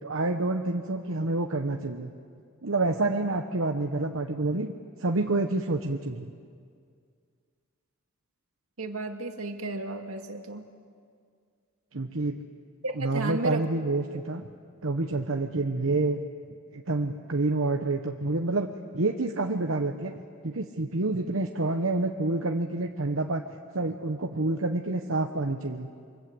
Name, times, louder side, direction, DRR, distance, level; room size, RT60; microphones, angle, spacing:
voice 1, 0.0-2.1 2.6-4.7 5.0-6.3 11.9-12.4 12.9-14.5 14.8-16.2 16.7-18.7 18.9-23.4 23.7-25.9, right 2 dB, 70° right, 4 dB, 1.1 m, -28 dB
voice 2, 8.8-10.6 12.8-13.7, right 2 dB, 90° right, 4 dB, 2.2 m, -33 dB
28.0 x 24.5 x 7.9 m, 2.2 s
head